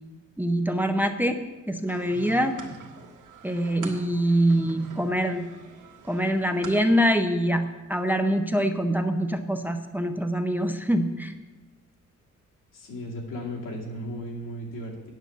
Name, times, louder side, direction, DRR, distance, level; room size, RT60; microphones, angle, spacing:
voice 1, 0.4-1.4 1.7-2.6 3.4-5.5 6.1-11.3, equal, 5° right, 6 dB, 0.6 m, -24 dB
sound 1, 1.9-7.1, right 4 dB, 75° right, 1.7 m, -45 dB
voice 2, 12.7-15.1, equal, 85° left, -2 dB, 2.6 m, -35 dB
9.3 x 6.9 x 7.2 m, 1.2 s
cardioid pair, 130°, 31 cm